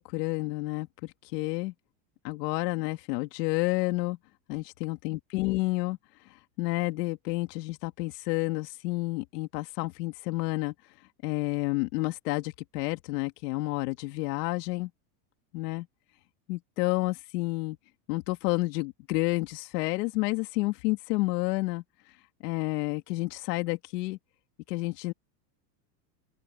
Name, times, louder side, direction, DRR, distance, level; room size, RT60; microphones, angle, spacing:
voice 1, 0.0-1.7 2.2-4.2 4.5-6.0 6.6-10.7 11.2-14.9 15.5-15.9 16.5-17.8 18.1-21.8 22.4-24.2 24.7-25.1, left 20 dB, 70° left, 2.7 m, -30 dB
open air
supercardioid pair, 140°, 49 cm